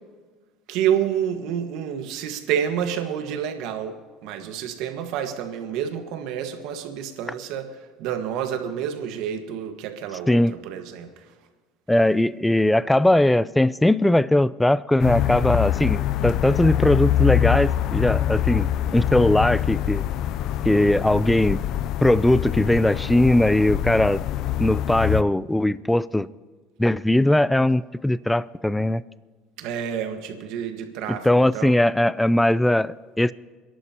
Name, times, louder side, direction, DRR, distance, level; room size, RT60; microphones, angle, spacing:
voice 1, 0.7-7.7 8.0-11.1 29.6-31.8, right 9 dB, 75° right, 6 dB, 1.6 m, -29 dB
voice 2, 11.9-20.0 20.6-21.6 22.0-24.2 24.6-26.3 26.8-29.0 31.1-33.3, left 1 dB, 5° left, 18 dB, 0.4 m, -20 dB
sound 1, 15.0-25.2, left 12 dB, 65° left, 0.5 m, -24 dB
29.5 x 11.0 x 2.9 m, 1.4 s
supercardioid pair, 95°, 0 cm